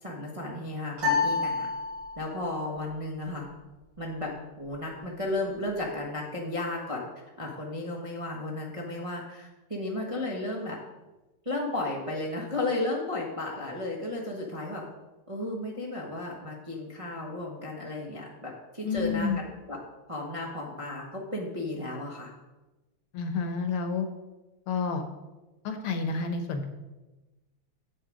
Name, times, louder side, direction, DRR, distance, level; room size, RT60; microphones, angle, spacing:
voice 1, 0.0-1.7 2.2-3.5 4.0-4.3 4.6-7.0 7.4-10.8 11.4-14.8 15.3-19.8 20.1-22.3, left 2 dB, 20° right, -3 dB, 1.0 m, -34 dB
sound 1, 1.0-2.5, left 4 dB, 55° right, 3.7 m, -28 dB
voice 2, 18.8-19.4 23.1-24.1 24.7-25.0 25.7-26.7, left 4 dB, 75° left, 6 dB, 1.8 m, -29 dB
8.5 x 7.9 x 5.0 m, 1.1 s
omnidirectional pair, 2.4 m